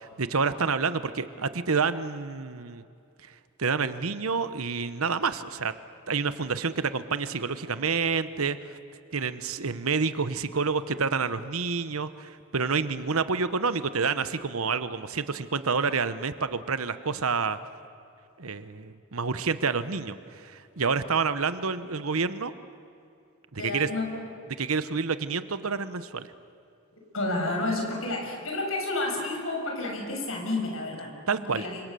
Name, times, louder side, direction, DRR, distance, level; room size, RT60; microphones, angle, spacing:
voice 1, 0.0-2.8 3.6-5.7 6.1-8.8 9.1-17.6 18.4-22.5 23.5-23.9 24.6-26.3 31.3-31.6, right 5 dB, 85° right, 12 dB, 1.1 m, -28 dB
voice 2, 23.6-24.1 27.1-31.8, left 2 dB, 70° left, 0 dB, 7.1 m, -30 dB
28.5 x 26.0 x 6.9 m, 2.5 s
head